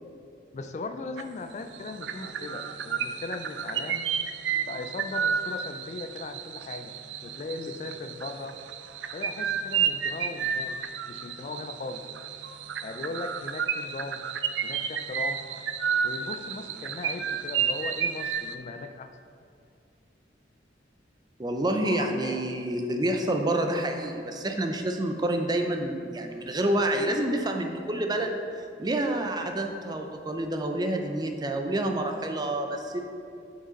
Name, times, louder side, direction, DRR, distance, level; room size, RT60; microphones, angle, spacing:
voice 1, 0.5-4.1 4.6-7.0 7.2-8.6 9.1-10.8 11.1-12.1 12.8-14.2 14.6-15.4 16.0-19.1 21.8-22.4, left 3 dB, 40° left, 8 dB, 0.3 m, -38 dB
sound 1, 1.2-1.5 1.7-18.5, right 7 dB, 85° right, 0.4 m, -31 dB
voice 2, 21.4-28.4 28.8-33.0, right 1 dB, 25° right, 4 dB, 0.5 m, -28 dB
8.0 x 5.0 x 3.9 m, 2.5 s
head